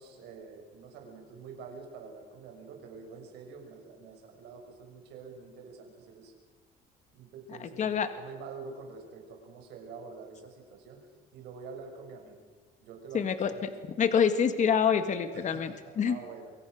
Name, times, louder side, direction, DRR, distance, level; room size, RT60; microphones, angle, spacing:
voice 1, 0.0-6.3 7.1-11.0 11.3-12.4 12.8-13.7 15.3-16.5, right 5 dB, 90° right, 3 dB, 6.2 m, -46 dB
voice 2, 7.8-8.1 13.1-13.7 14.0-16.2, left 7 dB, 45° left, 9 dB, 1.9 m, -26 dB
28.5 x 23.5 x 6.5 m, 1.4 s
cardioid pair, 110°, 17 cm